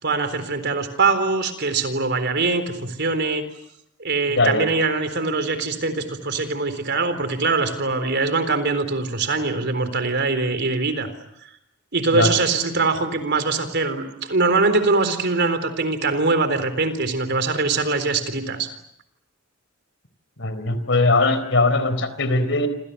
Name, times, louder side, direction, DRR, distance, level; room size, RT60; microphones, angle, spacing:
voice 1, 0.0-3.4 4.0-11.1 11.9-18.7, right 3 dB, 55° right, 10 dB, 4.0 m, -22 dB
voice 2, 4.3-4.7 12.1-12.3 20.4-22.7, left 2 dB, 60° left, 12 dB, 4.1 m, -20 dB
29.0 x 27.0 x 6.9 m, 0.75 s
head